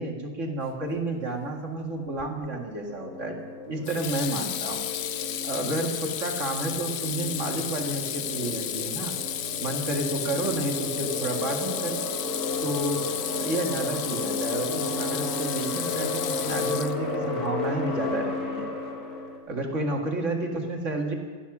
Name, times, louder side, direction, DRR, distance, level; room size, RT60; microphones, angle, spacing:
voice 1, 0.0-3.4 3.7-4.8 5.4-9.1 9.6-12.0 12.6-13.0 13.3-18.7 19.5-21.1, right 2 dB, 45° right, 1 dB, 2.2 m, -31 dB
Water tap faucet / Sink (filling or washing), 2.2-2.5 3.8-17.3, left 10 dB, 90° left, 0.5 m, -33 dB
sound 1, 2.9-19.4, left 2 dB, 60° left, 2.5 m, -33 dB
15.5 x 12.5 x 6.1 m, 1.5 s
omnidirectional pair, 1.8 m